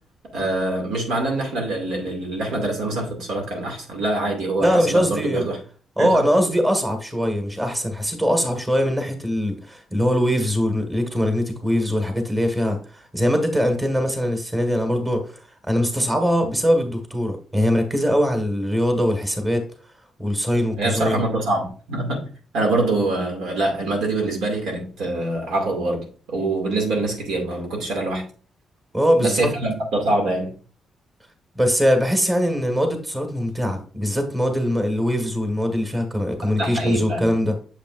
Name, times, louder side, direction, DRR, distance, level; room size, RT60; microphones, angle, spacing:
voice 1, 0.2-5.6 6.0-6.2 20.8-28.2 29.2-30.6 36.4-37.3, right 2 dB, 90° right, 2.2 m, -25 dB
voice 2, 4.6-5.4 6.0-19.6 20.2-21.2 28.9-29.5 31.5-37.5, equal, 15° right, 1.6 m, -22 dB
7.2 x 5.2 x 2.5 m
cardioid pair, 95°, 0 cm